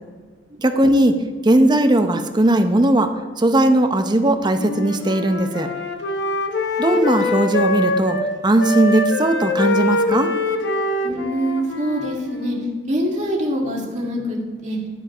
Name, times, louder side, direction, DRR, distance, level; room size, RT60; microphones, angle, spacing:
voice 1, 0.6-1.1 1.4-3.1 3.4-5.7 6.8-8.2 8.4-10.3, right 1 dB, 25° right, 7 dB, 0.7 m, -17 dB
Wind instrument woodwind instrument, 4.5-8.3 8.6-12.7, left 2 dB, 70° left, 0.9 m, -24 dB
voice 2, 11.0-12.6 12.9-14.8, equal, 40° right, -2 dB, 2.1 m, -24 dB
12.5 x 5.2 x 5.4 m, 1.5 s
head